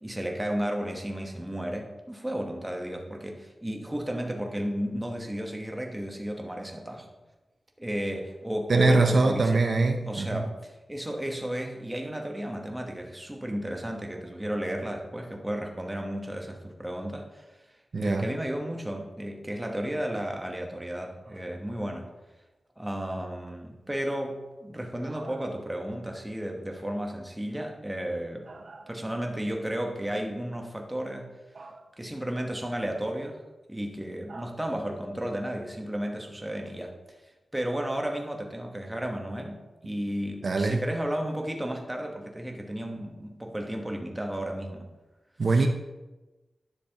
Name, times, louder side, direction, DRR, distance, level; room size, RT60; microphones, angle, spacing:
voice 1, 0.0-7.1 7.8-9.6 10.1-17.5 17.9-22.1 22.8-28.5 28.9-31.3 32.0-33.4 33.7-36.9 37.5-44.9 45.5-45.6, equal, 10° right, 2 dB, 1.1 m, -33 dB
voice 2, 8.7-10.4 17.9-18.3 25.2-25.4 28.5-28.8 31.6-31.8 34.3-34.5 40.4-40.8 45.4-45.7, right 3 dB, 60° right, 4 dB, 0.5 m, -24 dB
10.0 x 6.6 x 2.9 m, 1.1 s
wide cardioid pair, 105°, 0 cm